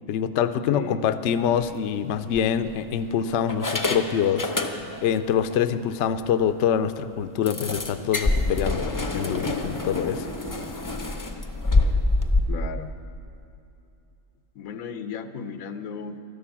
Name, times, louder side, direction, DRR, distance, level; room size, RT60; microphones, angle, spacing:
voice 1, 0.1-4.7 5.0-10.3, left 8 dB, 65° left, 10 dB, 0.8 m, -25 dB
voice 2, 0.7-1.0 12.5-12.9 14.5-16.2, left 6 dB, 90° left, 9 dB, 1.2 m, -35 dB
sound 1, 1.4-1.7 2.3-3.0 3.5-5.1 5.5-5.6 6.0-6.1 6.4-6.5 7.5-12.4, left 2 dB, 25° left, 0.4 m, -26 dB
12.5 x 11.5 x 7.1 m, 2.7 s
omnidirectional pair, 1.4 m